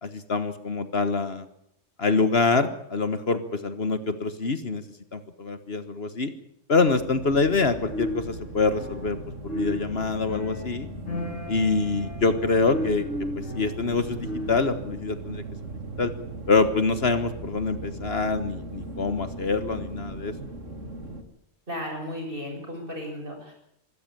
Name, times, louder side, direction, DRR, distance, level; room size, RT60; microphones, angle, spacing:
voice 1, 0.0-1.4 2.0-4.8 5.1-6.3 6.7-9.2 9.4-10.9 11.5-13.0 13.5-15.4 16.0-16.1 16.5-20.3, left 4 dB, 55° left, 11 dB, 1.6 m, -25 dB
sound 1, 6.8-21.2, right 2 dB, 80° right, 2.6 m, -38 dB
sound 2, 7.9-14.8, left 1 dB, 85° left, 4.0 m, -34 dB
voice 2, 21.7-23.5, equal, 45° right, 1 dB, 7.5 m, -34 dB
24.5 x 13.0 x 8.9 m, 0.73 s
omnidirectional pair, 1.3 m